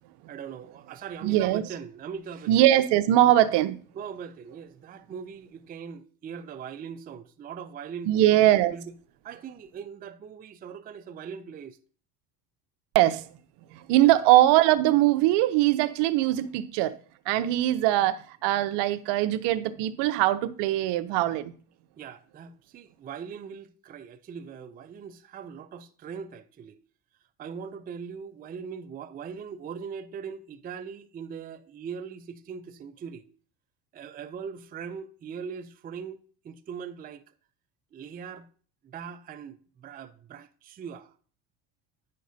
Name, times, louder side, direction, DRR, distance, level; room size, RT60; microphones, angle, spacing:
voice 1, 0.3-2.7 3.9-8.1 8.7-8.9 9.2-11.8 14.0-14.2 22.0-26.8 27.4-33.2 33.9-37.3 37.9-38.5 38.8-41.1, right 6 dB, 20° right, 0.4 m, -40 dB
voice 2, 1.2-1.6 2.5-3.8 8.1-8.7 12.9-13.3 13.7-16.9 17.3-21.5, right 14 dB, 65° right, 0.7 m, -21 dB
10.0 x 6.5 x 2.7 m
supercardioid pair, 110°, 45 cm